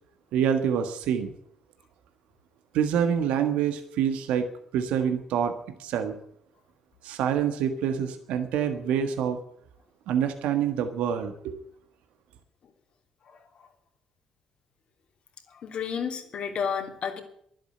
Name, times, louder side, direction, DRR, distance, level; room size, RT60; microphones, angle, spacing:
voice 1, 0.3-1.3 2.7-4.5 4.7-5.5 5.8-6.2 7.0-9.4 10.1-11.5, right 8 dB, 75° right, 7 dB, 1.5 m, -26 dB
voice 2, 15.6-17.2, left 7 dB, 60° left, 3 dB, 3.1 m, -31 dB
11.5 x 11.0 x 9.4 m, 0.69 s
hypercardioid pair, 55°, 2 cm